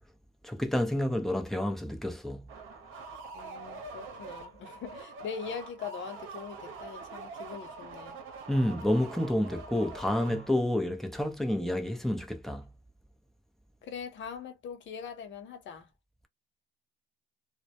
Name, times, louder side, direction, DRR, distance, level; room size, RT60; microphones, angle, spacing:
voice 1, 0.4-2.5 8.5-12.7, left 1 dB, ahead, 0.6 m, -29 dB
sound 1, 2.5-10.8, right 4 dB, 90° right, 0.7 m, -44 dB
voice 2, 3.3-8.2 13.8-15.9, left 6 dB, 70° left, 0.8 m, -41 dB
2.2 x 2.1 x 2.7 m
cardioid pair, 90°, 20 cm